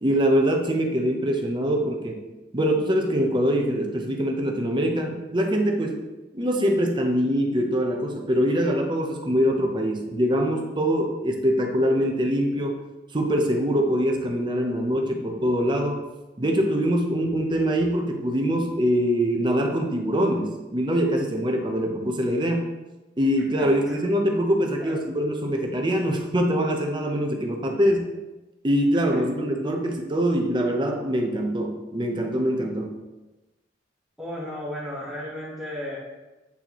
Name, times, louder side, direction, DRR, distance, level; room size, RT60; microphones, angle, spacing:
voice 1, 0.0-2.2 2.5-6.0 6.3-12.8 13.1-16.0 16.4-22.7 23.2-28.1 28.6-32.9, equal, 25° right, 2 dB, 0.8 m, -23 dB
voice 2, 23.6-24.0 24.8-25.0 29.1-29.2 34.2-36.0, left 1 dB, ahead, -10 dB, 1.1 m, -34 dB
8.2 x 4.3 x 3.0 m, 1.1 s
head